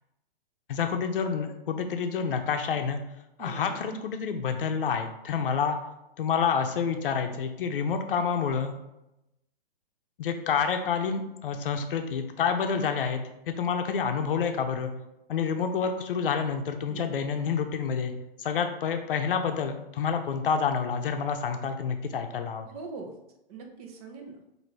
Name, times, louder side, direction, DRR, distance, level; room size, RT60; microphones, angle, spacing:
voice 1, 0.7-3.0 3.4-5.8 6.2-8.7 10.2-14.9 15.3-18.1 18.4-22.7, left 6 dB, 60° left, 6 dB, 0.6 m, -28 dB
voice 2, 3.4-3.8 16.9-17.2 22.7-23.1 23.5-24.4, right 4 dB, 40° right, 3 dB, 0.8 m, -42 dB
5.7 x 2.7 x 3.2 m, 0.90 s
hypercardioid pair, 135°, 31 cm